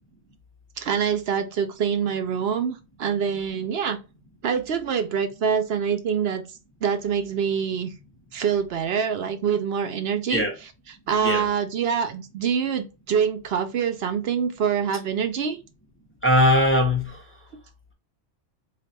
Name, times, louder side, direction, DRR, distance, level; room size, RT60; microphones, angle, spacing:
voice 1, 0.8-4.0 4.4-6.4 6.8-7.9 8.3-10.4 11.1-15.6, right 7 dB, 65° right, 0.8 m, -25 dB
voice 2, 16.2-17.3, left 1 dB, 10° left, 0.9 m, -20 dB
3.2 x 2.5 x 4.2 m
omnidirectional pair, 1.2 m